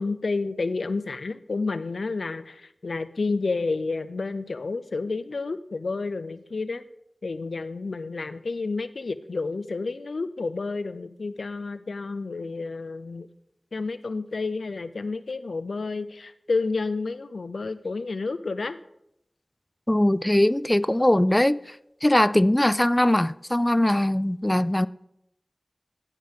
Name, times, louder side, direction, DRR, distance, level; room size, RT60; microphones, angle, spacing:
voice 1, 0.0-6.8 7.2-13.3 13.7-18.8, left 3 dB, 90° left, 0.4 m, -30 dB
voice 2, 19.9-24.9, left 1 dB, 20° left, 0.3 m, -21 dB
16.0 x 5.6 x 3.6 m
wide cardioid pair, 40°, 0 cm